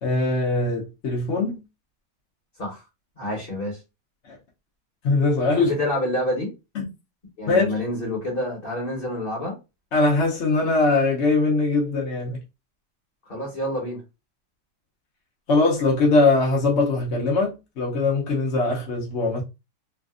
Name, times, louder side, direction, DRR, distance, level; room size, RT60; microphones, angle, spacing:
voice 1, 0.0-1.6 4.3-4.4 5.0-5.7 6.7-6.9 7.5-7.7 9.9-12.4 15.5-19.4, left 3 dB, 50° left, 0.8 m, -21 dB
voice 2, 3.2-3.8 5.5-6.5 7.4-9.6 13.3-14.0, left 1 dB, 35° left, 1.1 m, -28 dB
3.3 x 2.5 x 2.4 m
omnidirectional pair, 2.0 m